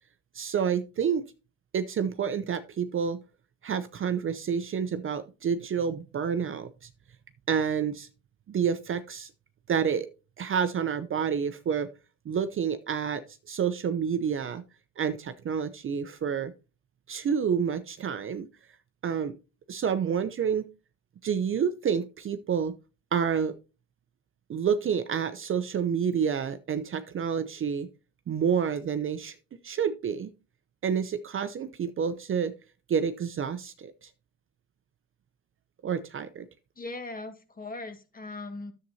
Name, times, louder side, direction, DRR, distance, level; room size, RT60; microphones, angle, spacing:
voice 1, 0.3-1.2 1.7-3.2 3.6-6.7 7.5-8.1 8.5-9.3 9.7-10.1 10.4-11.9 12.3-14.6 15.0-16.5 17.1-18.5 19.0-19.3 19.7-20.6 21.2-22.7 23.1-23.5 24.5-27.9 28.3-29.3 29.6-30.3 30.8-32.5 32.9-34.1 35.8-36.5, right 7 dB, 35° right, 11 dB, 0.7 m, -28 dB
voice 2, 36.8-38.7, left 2 dB, 25° left, 8 dB, 1.7 m, -39 dB
10.5 x 7.7 x 2.8 m, 0.31 s
cardioid pair, 95°, 35 cm